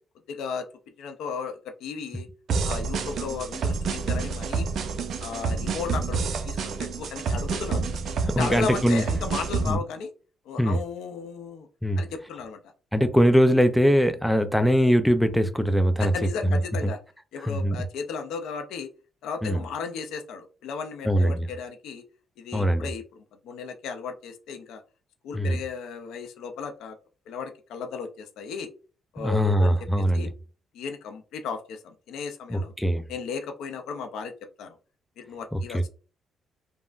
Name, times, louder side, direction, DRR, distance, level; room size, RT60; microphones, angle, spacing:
voice 1, 0.3-0.7 1.0-2.3 2.6-4.7 5.2-7.9 8.4-10.1 10.5-11.7 12.0-12.6 16.0-17.0 17.3-18.9 19.2-22.0 22.4-24.8 25.2-27.0 27.3-28.7 29.1-29.9 30.1-30.3 30.7-32.7 33.1-34.8 35.2-35.9, left 5 dB, 85° left, 0.5 m, -35 dB
sound 1, 2.5-9.8, right 5 dB, 65° right, 0.4 m, -28 dB
voice 2, 8.3-9.0 9.7-9.8 10.6-10.8 11.8-12.0 12.9-16.1 16.5-16.6 17.5-17.8 19.4-19.6 21.0-21.5 22.5-22.9 25.3-25.6 29.2-30.3 32.5-33.0 35.5-35.9, equal, ahead, 0.4 m, -22 dB
3.5 x 2.0 x 2.4 m
cardioid pair, 90°, 0 cm